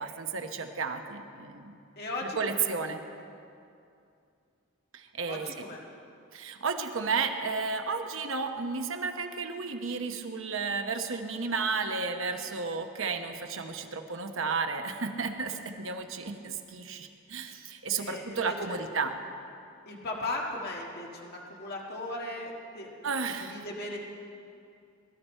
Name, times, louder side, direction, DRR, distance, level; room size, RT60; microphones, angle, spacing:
voice 1, 0.0-1.8 2.4-3.0 4.9-5.7 6.3-19.1 23.0-23.6, right 4 dB, 65° right, 6 dB, 1.0 m, -33 dB
voice 2, 2.0-2.7 5.3-5.8 18.0-18.8 19.9-23.1 23.4-24.0, left 2 dB, 50° left, -2 dB, 1.7 m, -37 dB
19.5 x 11.5 x 4.5 m, 2.5 s
head